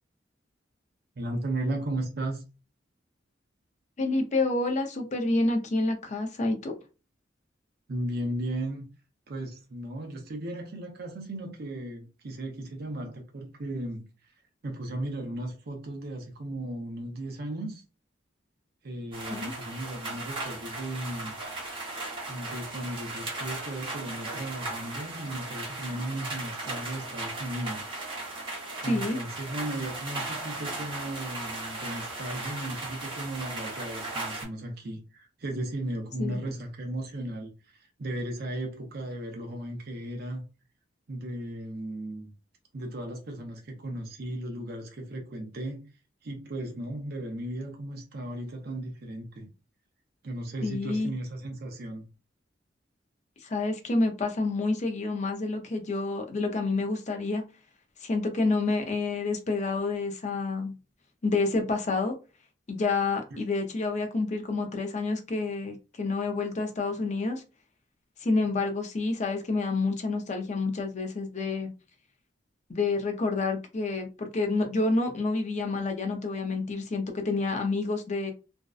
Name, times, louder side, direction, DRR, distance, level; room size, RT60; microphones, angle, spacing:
voice 1, 1.2-2.4 7.9-8.9 9.3-14.1 14.6-17.8 18.8-21.3 22.3-27.8 28.8-40.4 41.1-42.3 42.7-45.8 46.2-49.5 50.2-52.1 63.3-63.4, right 1 dB, 55° right, 0.5 m, -36 dB
voice 2, 4.0-6.7 19.3-19.5 28.8-29.2 36.2-36.3 50.6-51.1 53.4-57.4 58.0-60.7 61.2-62.1 62.7-67.4 68.2-71.7 72.7-78.3, left 3 dB, 40° left, 0.5 m, -28 dB
sound 1, 19.1-34.5, right 2 dB, 30° right, 0.8 m, -37 dB
2.5 x 2.1 x 2.3 m
head